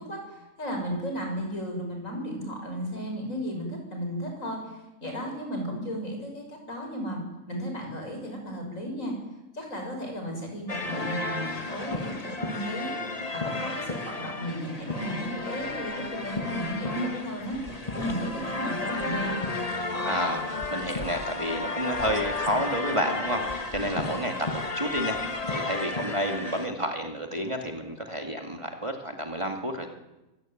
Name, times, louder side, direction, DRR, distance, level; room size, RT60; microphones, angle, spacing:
voice 1, 0.0-7.2 7.5-9.1 9.5-12.9 13.3-19.4, equal, 70° left, 2 dB, 7.0 m, -34 dB
sound 1, 10.7-26.7, left 2 dB, 30° left, 1.6 m, -32 dB
voice 2, 20.0-29.9, equal, 20° right, 3 dB, 2.3 m, -30 dB
24.5 x 17.5 x 9.3 m, 1.0 s
omnidirectional pair, 1.4 m